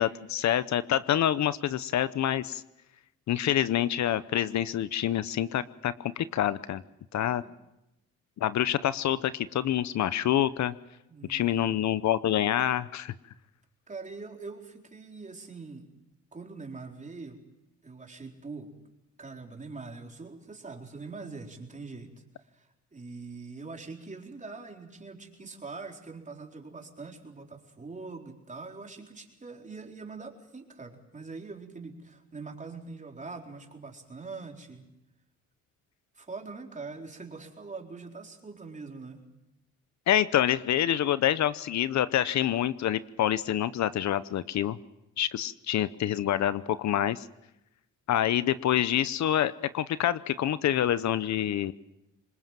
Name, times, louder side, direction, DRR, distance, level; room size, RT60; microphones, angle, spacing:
voice 1, 0.0-2.6 3.3-6.8 7.1-7.4 8.4-10.7 11.3-13.1 40.1-44.8 45.2-47.2 48.1-51.7, left 11 dB, 65° left, 15 dB, 0.9 m, -27 dB
voice 2, 11.1-11.8 13.9-15.9 16.3-17.4 17.8-18.7 19.2-22.1 22.4-34.9 36.1-39.3, right 4 dB, 25° right, 2 dB, 4.3 m, -43 dB
25.5 x 21.5 x 7.6 m, 0.90 s
cardioid pair, 90°, 30 cm